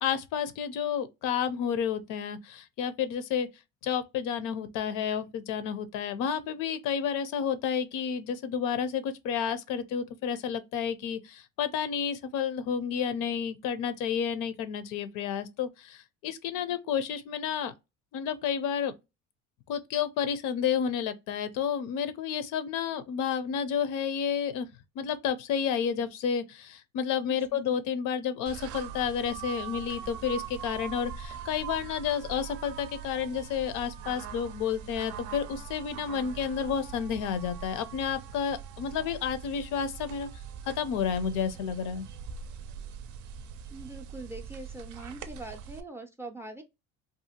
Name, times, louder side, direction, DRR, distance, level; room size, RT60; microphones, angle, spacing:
voice 1, 0.0-3.5 3.8-17.7 18.1-18.9 19.7-24.7 25.0-40.3 40.7-42.1, left 7 dB, 80° left, 0.6 m, -31 dB
voice 2, 27.3-27.6 43.7-46.6, right 2 dB, 10° right, 0.3 m, -43 dB
sound 1, 28.5-45.8, right 7 dB, 70° right, 0.5 m, -42 dB
2.7 x 2.5 x 2.7 m
cardioid pair, 145°, 30 cm